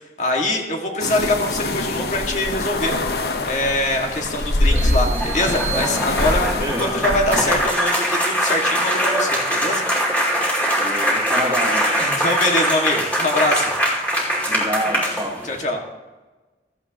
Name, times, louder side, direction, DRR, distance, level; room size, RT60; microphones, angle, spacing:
voice 1, 0.2-2.9 3.5-9.8 12.0-13.7 15.5-15.8, left 1 dB, 45° left, 1 dB, 1.9 m, -23 dB
sound 1, 1.0-7.7, left 2 dB, 65° left, 1.0 m, -24 dB
sound 2, 4.6-15.6, equal, 10° left, 2.4 m, -22 dB
sound 3, 4.8-6.7, right 11 dB, 40° right, 1.2 m, -34 dB
voice 2, 6.6-7.1 10.7-12.1 14.4-15.5, right 1 dB, 20° right, 2 dB, 1.2 m, -28 dB
15.5 x 13.5 x 3.0 m, 1.2 s
head